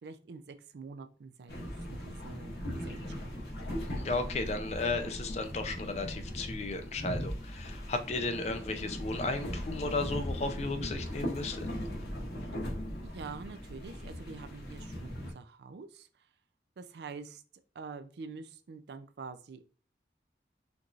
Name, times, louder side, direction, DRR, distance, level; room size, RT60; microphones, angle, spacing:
voice 1, 0.0-3.5 13.0-16.3 16.8-17.4 17.7-19.7, right 4 dB, 70° right, 0.4 m, -46 dB
sound 1, 1.5-15.3, equal, 65° left, 1.1 m, -39 dB
voice 2, 3.9-11.7, left 3 dB, 40° left, 0.4 m, -34 dB
4.5 x 2.6 x 2.4 m
head